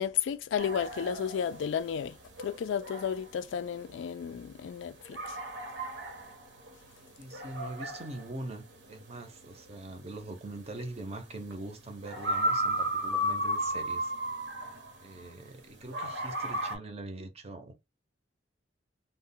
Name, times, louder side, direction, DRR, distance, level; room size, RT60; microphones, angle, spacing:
voice 1, 0.0-2.1 2.4-5.2, left 8 dB, 80° left, 0.3 m, -32 dB
sound 1, 0.6-15.5 15.9-16.8, right 1 dB, 75° right, 0.8 m, -34 dB
voice 2, 7.2-14.1 15.0-17.7, right 2 dB, 35° right, 0.6 m, -42 dB
2.1 x 2.1 x 3.7 m
head